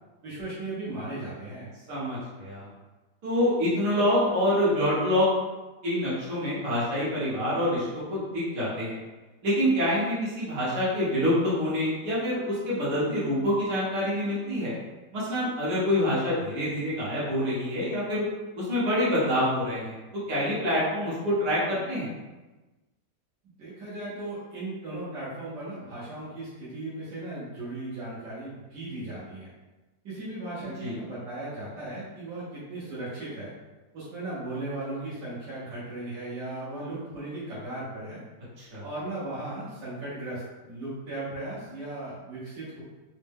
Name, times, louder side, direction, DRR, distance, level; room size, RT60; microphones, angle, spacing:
voice 1, 0.2-1.7 23.4-29.5 30.0-33.5 33.9-38.2 38.8-42.8, right 2 dB, 85° right, -9 dB, 1.7 m, -37 dB
voice 2, 1.9-2.7 3.2-5.3 5.8-9.0 9.4-14.7 15.1-18.2 18.6-20.0 20.3-22.1 30.8-30.9 38.6-38.8, left 1 dB, 70° right, -9 dB, 1.9 m, -26 dB
4.1 x 2.2 x 3.5 m, 1.2 s
omnidirectional pair, 1.8 m